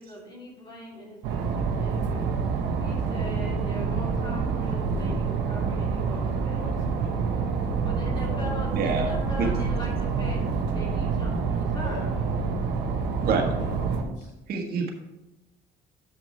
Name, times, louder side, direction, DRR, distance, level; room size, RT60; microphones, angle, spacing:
voice 1, 0.0-2.4 2.8-6.7 7.8-10.4 10.7-12.2, equal, 25° left, -2 dB, 2.4 m, -40 dB
sound 1, 1.2-14.0, right 5 dB, 90° right, 1.1 m, -27 dB
voice 2, 6.6-8.5 11.8-12.4 13.6-14.3, equal, 85° left, -1 dB, 2.4 m, -41 dB
voice 3, 8.7-9.1 9.4-9.5 13.2-13.6 14.5-14.9, right 4 dB, 65° right, 2 dB, 1.6 m, -26 dB
7.5 x 6.2 x 4.3 m, 0.97 s
cardioid pair, 110°, 17 cm